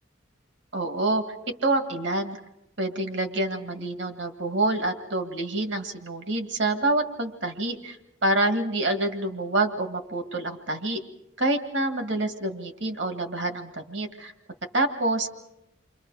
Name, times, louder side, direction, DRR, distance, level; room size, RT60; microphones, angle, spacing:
voice 1, 0.7-1.2 1.6-2.4 2.8-11.0 11.4-14.3 14.7-15.3, right 2 dB, 65° right, 6 dB, 1.9 m, -27 dB
30.0 x 25.0 x 4.8 m, 0.86 s
head